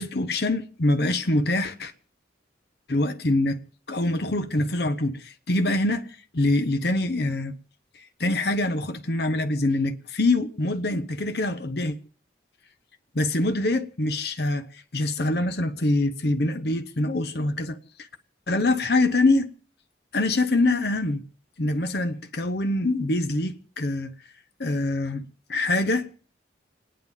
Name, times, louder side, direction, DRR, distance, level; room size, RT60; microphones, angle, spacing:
voice 1, 0.0-1.9 2.9-3.6 3.9-6.1 6.3-7.5 8.2-11.9 13.1-17.8 18.5-19.5 20.1-21.2 21.6-24.1 24.6-25.2 25.5-26.2, left 2 dB, 55° left, 0.9 m, -24 dB
29.5 x 10.0 x 3.5 m
head